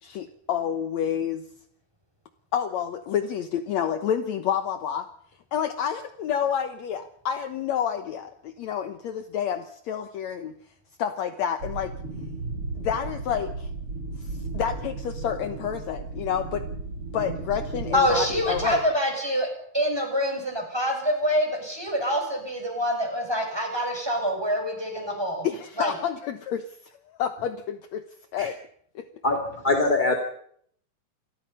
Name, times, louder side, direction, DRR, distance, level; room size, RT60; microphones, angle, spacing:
voice 1, 0.0-1.5 2.5-5.1 5.5-10.6 11.0-11.9 12.8-13.7 14.2-16.6 17.1-18.8 25.4-26.7 27.1-28.0 28.3-28.6 29.0-29.1, left 8 dB, 65° left, 9 dB, 2.2 m, -29 dB
sound 1, 11.6-18.8, right 3 dB, 45° right, 4.6 m, -35 dB
voice 2, 17.9-19.5 19.7-25.5 25.8-25.9, equal, 5° right, 2 dB, 6.9 m, -26 dB
voice 3, 29.6-30.2, left 2 dB, 15° left, 3 dB, 2.3 m, -22 dB
28.0 x 22.0 x 5.6 m, 0.65 s
omnidirectional pair, 3.6 m